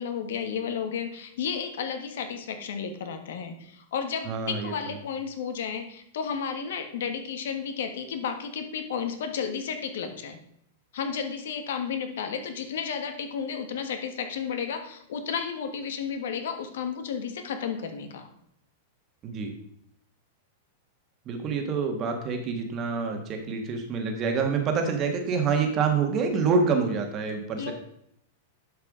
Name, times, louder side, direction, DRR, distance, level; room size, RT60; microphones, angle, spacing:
voice 1, 0.0-10.4 10.9-18.3 27.6-27.7, left 7 dB, 75° left, 7 dB, 1.4 m, -32 dB
voice 2, 4.2-4.7 19.2-19.5 21.2-27.7, right 5 dB, 30° right, 4 dB, 1.5 m, -27 dB
11.0 x 4.7 x 5.0 m, 0.73 s
supercardioid pair, 155°, 0 cm